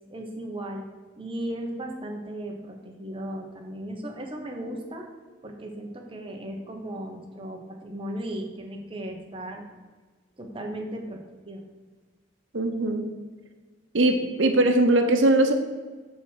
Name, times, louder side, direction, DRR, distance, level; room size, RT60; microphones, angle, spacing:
voice 1, 0.1-0.9 1.2-5.1 5.4-9.7 10.4-11.6, right 1 dB, 30° right, 1 dB, 1.3 m, -36 dB
voice 2, 12.5-13.1 13.9-15.5, right 2 dB, 80° right, 4 dB, 0.9 m, -21 dB
7.9 x 4.4 x 6.4 m, 1.4 s
head